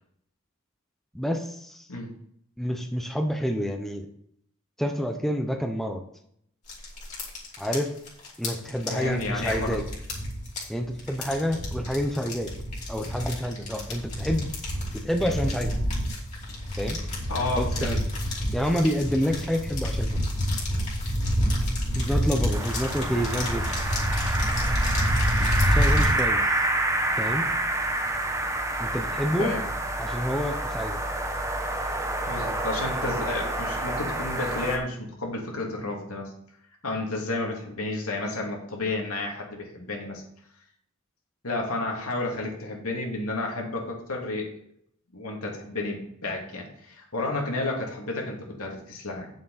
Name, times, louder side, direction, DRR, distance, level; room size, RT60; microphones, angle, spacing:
voice 1, 1.1-1.9 2.6-4.1 4.8-6.0 7.6-7.9 8.4-9.8 10.7-12.5 12.9-14.5 14.9-15.8 16.8-17.0 17.6-18.0 18.5-20.2 22.0-23.7 25.7-26.6 27.2-27.5 28.8-29.5 30.0-31.0, equal, ahead, 3 dB, 0.8 m, -28 dB
sound 1, 6.7-26.2, equal, 35° left, 3.2 m, -28 dB
voice 2, 8.9-9.8 17.3-18.0 29.4-29.6 32.3-36.3 36.8-40.2 41.4-44.5 45.1-49.3, left 2 dB, 85° left, 0 dB, 2.8 m, -31 dB
sound 2, 22.5-34.8, right 1 dB, 15° right, 1.1 m, -28 dB
9.4 x 7.4 x 4.2 m, 0.69 s
head